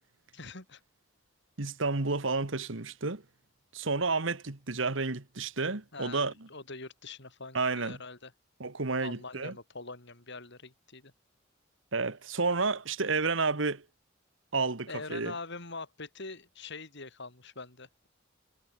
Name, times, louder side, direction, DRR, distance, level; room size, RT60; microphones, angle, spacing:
voice 1, 0.3-0.8 5.9-8.3 9.0-11.1 14.9-18.1, left 3 dB, 60° left, 7.2 m, -44 dB
voice 2, 1.6-3.2 3.7-6.3 7.5-8.0 8.6-9.5 11.9-13.8 14.5-15.3, right 3 dB, 70° right, 1.6 m, -30 dB
head